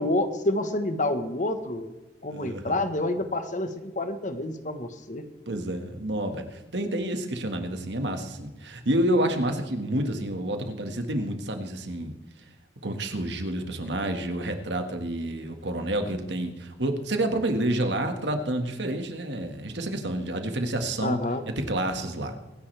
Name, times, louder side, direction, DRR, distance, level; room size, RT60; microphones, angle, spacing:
voice 1, 0.0-1.9 2.2-5.3 21.0-21.4, left 1 dB, 45° left, 9 dB, 1.3 m, -28 dB
voice 2, 2.3-2.7 5.5-12.1 12.8-21.2 21.5-22.4, right 1 dB, 80° right, 6 dB, 1.8 m, -29 dB
24.5 x 10.5 x 3.4 m, 1.2 s
head